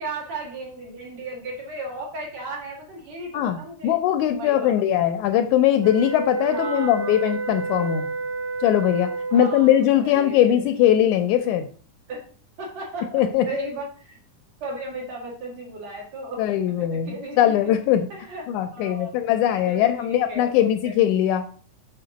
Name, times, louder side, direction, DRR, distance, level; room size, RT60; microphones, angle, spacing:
voice 1, 0.0-4.0 4.2-4.7 6.5-7.2 7.7-7.8 9.3-9.7 10.0-10.7 12.1-12.2 12.6-14.2 14.6-16.5 16.7-17.7 18.1-21.0, right 2 dB, 55° right, -3 dB, 3.1 m, -35 dB
voice 2, 3.3-8.1 8.6-11.7 13.1-13.5 16.4-18.1 18.5-21.4, left 11 dB, 80° left, 8 dB, 1.9 m, -20 dB
sound 1, 5.8-9.7, right 3 dB, 90° right, 1.2 m, -30 dB
6.6 x 5.7 x 4.0 m, 0.42 s
omnidirectional pair, 3.7 m